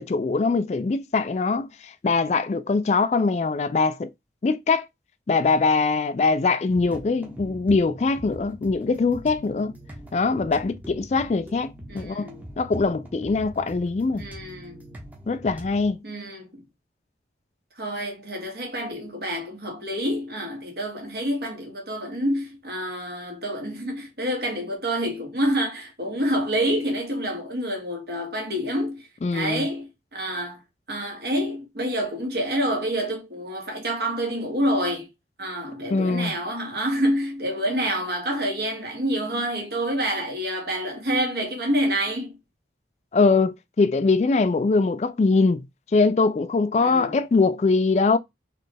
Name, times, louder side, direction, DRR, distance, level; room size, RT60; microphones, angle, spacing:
voice 1, 0.0-4.1 4.4-4.9 5.3-9.7 10.1-12.3 12.6-14.2 15.3-16.0 29.2-29.7 35.9-36.3 43.1-45.6 45.9-48.2, left 4 dB, 40° left, 0.3 m, -22 dB
sound 1, 6.7-15.9, equal, 10° right, 0.9 m, -42 dB
voice 2, 11.9-12.4 14.2-14.8 16.0-16.6 17.8-29.1 29.3-30.6 30.9-35.1 35.4-42.4 46.8-47.2, equal, 60° right, 1.8 m, -27 dB
4.2 x 3.2 x 3.3 m
head